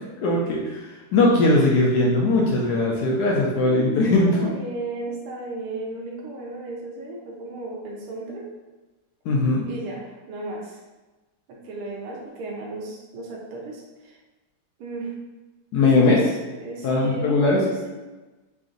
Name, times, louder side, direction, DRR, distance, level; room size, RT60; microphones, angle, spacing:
voice 1, 0.2-4.5 9.3-9.7 15.7-16.2 16.8-17.6, left 2 dB, 80° left, -3 dB, 0.9 m, -20 dB
voice 2, 3.6-3.9 4.3-8.4 9.6-10.8 11.5-14.2 14.8-15.1 15.8-18.0, right 2 dB, 85° right, -2 dB, 1.6 m, -35 dB
3.8 x 2.5 x 3.7 m, 1.2 s
omnidirectional pair, 2.3 m